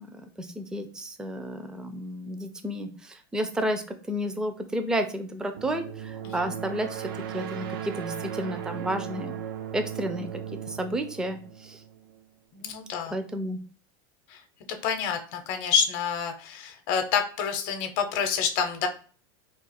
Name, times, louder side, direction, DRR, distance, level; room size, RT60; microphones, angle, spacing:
voice 1, 0.0-7.0 7.3-9.3 9.7-10.4 10.7-11.8 13.1-13.6, equal, 5° right, 6 dB, 0.3 m, -31 dB
sound 1, 5.6-12.2, right 9 dB, 75° right, 0.5 m, -37 dB
voice 2, 12.5-13.1 14.3-14.4 14.8-18.9, left 7 dB, 60° left, 5 dB, 0.6 m, -28 dB
2.4 x 2.4 x 4.0 m, 0.40 s
supercardioid pair, 130°, 12 cm